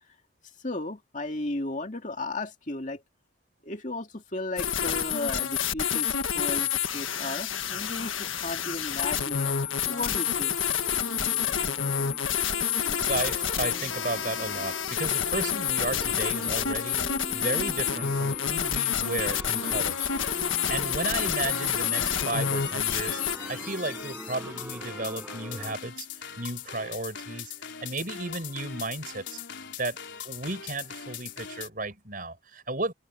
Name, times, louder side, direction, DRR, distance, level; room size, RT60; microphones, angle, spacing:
voice 1, 0.6-3.0 3.6-9.6 9.8-10.6, left 2 dB, 40° left, 2.4 m, -35 dB
sound 1, 4.6-23.4, left 8 dB, 80° left, 1.6 m, -28 dB
sound 2, 8.9-25.8, equal, 5° right, 5.8 m, -43 dB
sound 3, 12.8-31.7, left 6 dB, 65° left, 4.1 m, -42 dB
voice 2, 13.0-17.1 17.3-20.1 20.3-23.2 23.5-26.1 26.4-27.5 27.8-29.4 29.8-30.0 30.2-32.9, right 2 dB, 45° right, 5.3 m, -34 dB
open air
head